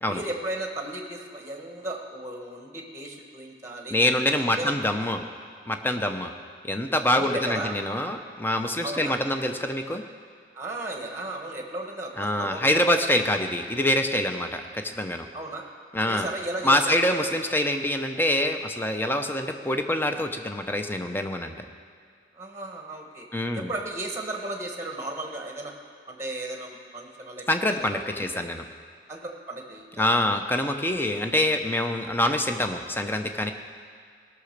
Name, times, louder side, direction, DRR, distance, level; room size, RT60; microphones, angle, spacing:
voice 1, 0.1-4.0 4.3-4.7 7.1-7.7 8.8-9.2 10.5-12.8 15.3-15.6 16.1-17.1 22.3-23.3 23.5-25.7 26.1-28.4 29.1-30.0, right 1 dB, 15° right, 2 dB, 1.2 m, -35 dB
voice 2, 3.9-5.2 5.7-6.3 6.6-10.0 12.2-15.3 15.9-16.3 16.6-21.7 23.3-23.7 27.5-28.6 30.0-33.5, left 1 dB, 10° left, 6 dB, 0.6 m, -25 dB
18.0 x 6.0 x 6.6 m, 2.2 s
head